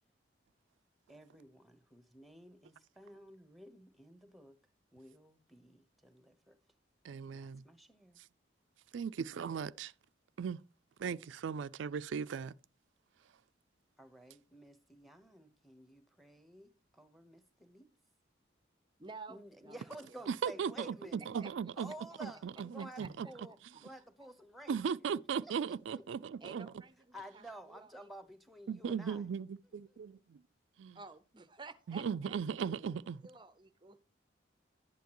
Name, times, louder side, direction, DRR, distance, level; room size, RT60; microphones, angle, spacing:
voice 1, 1.1-6.7 7.3-8.2 14.0-17.9 19.3-25.1 25.4-26.1 27.1-30.0, right 1 dB, ahead, 0.9 m, -53 dB
voice 2, 7.0-7.6 8.9-9.9 10.4-10.6 11.0-12.5 20.4-20.7 21.3-21.9 22.2-22.3 22.6-23.3 24.7-26.7 28.7-29.5 29.7-30.4 30.8-31.0 31.9-33.2, right 6 dB, 75° right, 0.4 m, -37 dB
voice 3, 19.0-19.7 21.4-21.5 23.0-23.1 26.4-27.0 30.9-32.7 33.2-34.0, right 4 dB, 25° right, 0.5 m, -51 dB
11.5 x 9.2 x 3.0 m
head